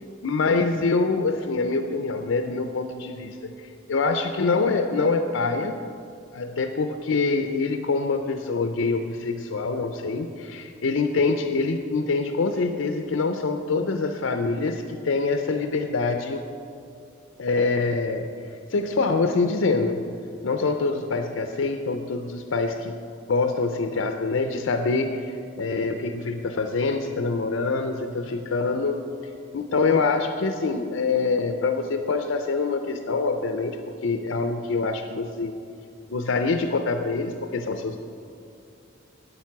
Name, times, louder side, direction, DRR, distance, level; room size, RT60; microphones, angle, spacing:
voice 1, 0.2-5.8 6.3-16.4 17.4-18.3 18.7-20.0 20.4-23.0 23.3-29.1 29.5-35.5 36.1-38.0, left 3 dB, 85° left, 7 dB, 0.5 m, -25 dB
9.0 x 8.9 x 5.9 m, 2.5 s
head